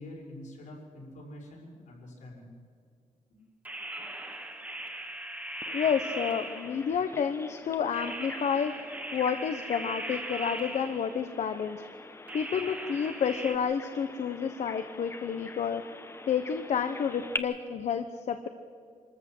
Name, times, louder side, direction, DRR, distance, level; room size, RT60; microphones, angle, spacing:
voice 1, 0.0-2.5 3.3-3.4, left 1 dB, 80° left, -2 dB, 5.8 m, -46 dB
sound 1, 3.6-7.0 7.9-11.3 12.3-13.6, right 1 dB, 10° right, 1.5 m, -39 dB
Bird vocalization bird call bird song, 5.6-17.4, left 3 dB, 20° left, 1.0 m, -45 dB
voice 2, 5.7-8.7 9.1-11.8 12.3-15.8 16.3-18.5, left 7 dB, 65° left, 8 dB, 1.0 m, -30 dB
25.5 x 14.0 x 7.8 m, 2.2 s
wide cardioid pair, 150°, 13 cm